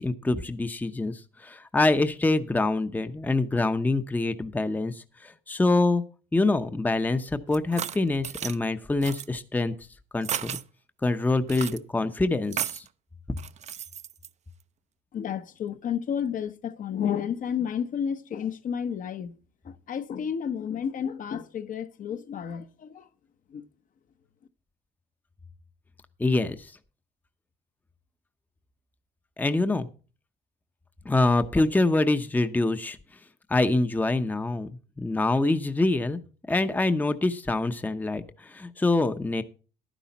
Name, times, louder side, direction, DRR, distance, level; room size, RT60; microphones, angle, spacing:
voice 1, 0.0-6.0 6.3-9.7 10.1-10.6 11.0-12.8 26.2-26.7 29.4-29.9 31.0-33.0 33.5-36.2 36.5-39.4, left 2 dB, 10° left, 0.7 m, -25 dB
sound 1, 7.5-8.6 9.0-9.3 10.2-10.6 11.5-11.8 12.5-12.9 13.4-14.3, right 9 dB, 40° right, 0.6 m, -33 dB
voice 2, 15.1-19.4 19.6-23.1 23.5-23.7, left 8 dB, 50° left, 1.0 m, -31 dB
11.5 x 10.0 x 4.1 m
cardioid pair, 110°, 17 cm